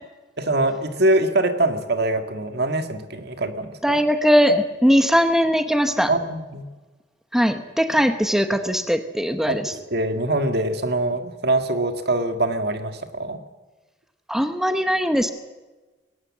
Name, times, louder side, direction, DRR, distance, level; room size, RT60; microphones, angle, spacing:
voice 1, 0.4-4.0 6.1-6.7 9.5-13.4, right 2 dB, 60° right, 7 dB, 1.9 m, -23 dB
voice 2, 3.8-6.1 7.3-9.7 14.3-15.3, equal, ahead, 8 dB, 0.9 m, -20 dB
21.5 x 18.0 x 7.4 m, 1.2 s
head